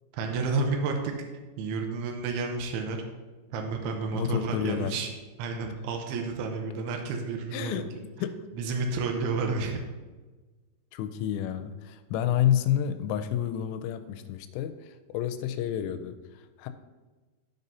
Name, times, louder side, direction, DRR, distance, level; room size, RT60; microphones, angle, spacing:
voice 1, 0.1-1.1 1.6-3.0 3.5-5.1 5.4-7.8 8.5-9.8, right 4 dB, 85° right, 3 dB, 2.3 m, -30 dB
voice 2, 4.1-5.0 7.5-7.9 8.2-8.4 10.9-16.7, left 10 dB, 85° left, 9 dB, 3.0 m, -29 dB
13.5 x 5.4 x 2.8 m, 1.3 s
omnidirectional pair, 5.6 m